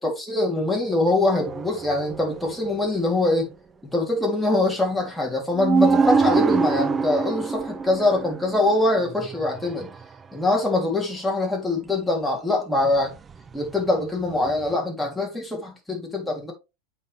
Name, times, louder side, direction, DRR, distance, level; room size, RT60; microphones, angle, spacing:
voice 1, 0.0-3.5 3.8-9.9 10.3-13.1 13.5-16.5, left 2 dB, ahead, 3.5 m, -23 dB
sound 1, 1.2-2.8 5.3-5.4 5.5-10.0 13.2-13.7 14.5-14.7, right 5 dB, 20° right, 0.5 m, -25 dB
7.8 x 5.4 x 3.5 m
hypercardioid pair, 115°, 0 cm